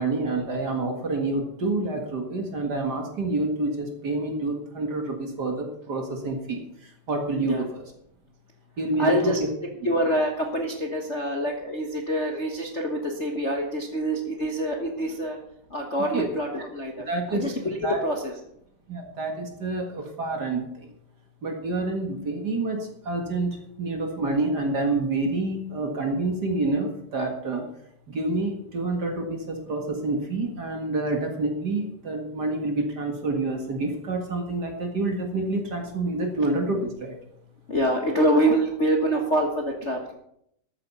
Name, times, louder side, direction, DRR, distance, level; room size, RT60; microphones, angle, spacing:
voice 1, 0.0-6.6 7.1-7.8 8.8-9.4 16.1-16.3 17.1-18.0 18.9-20.9 21.4-23.5 23.8-27.6 28.1-37.2, right 2 dB, 40° right, 3 dB, 1.9 m, -28 dB
voice 2, 9.0-9.4 9.8-15.4 15.7-18.3 37.7-40.1, right 1 dB, 85° left, 1 dB, 0.6 m, -26 dB
13.5 x 9.0 x 5.5 m, 0.73 s
omnidirectional pair, 3.7 m